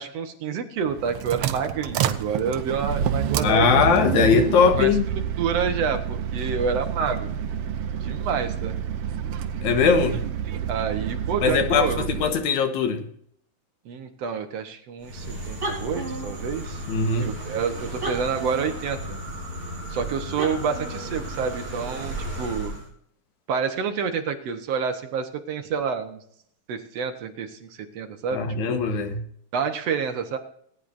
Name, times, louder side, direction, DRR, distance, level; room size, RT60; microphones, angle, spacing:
voice 1, 0.0-3.9 4.8-4.9 5.4-7.3 8.0-8.8 10.7-12.1 13.9-16.8 17.2-19.2 19.9-22.7 23.5-26.2 26.7-28.8 29.5-30.4, right 6 dB, 65° right, 2.0 m, -28 dB
sound 1, 0.8-12.4, right 8 dB, 80° right, 1.3 m, -28 dB
voice 2, 3.4-5.1 9.6-10.2 11.4-13.0 16.9-17.3 28.3-29.2, left 6 dB, 75° left, 2.5 m, -20 dB
sound 2, 15.0-22.9, right 1 dB, 20° right, 4.3 m, -33 dB
19.5 x 9.4 x 2.6 m
omnidirectional pair, 3.5 m